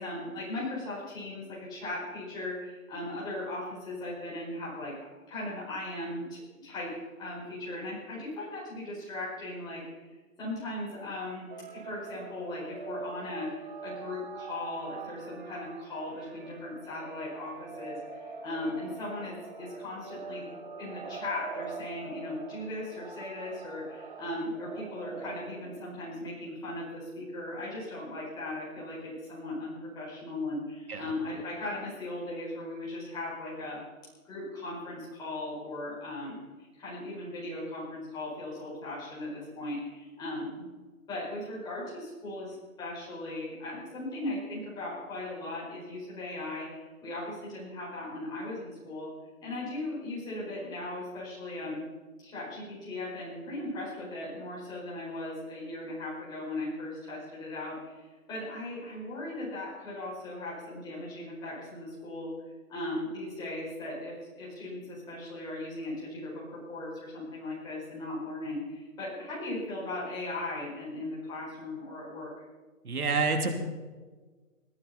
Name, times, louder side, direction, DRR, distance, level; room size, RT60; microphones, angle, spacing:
voice 1, 0.0-4.9 5.3-9.8 10.4-20.4 20.8-33.8 34.2-36.4 36.8-40.7 41.1-49.1 49.4-51.8 52.2-62.3 62.7-72.3, left 2 dB, 10° left, -7 dB, 4.9 m, -38 dB
sound 1, 11.5-25.9, right 5 dB, 35° right, 1.1 m, -44 dB
voice 2, 72.8-73.6, right 3 dB, 85° right, 4 dB, 3.1 m, -28 dB
20.5 x 15.0 x 4.2 m, 1.3 s
hypercardioid pair, 165°, 43 cm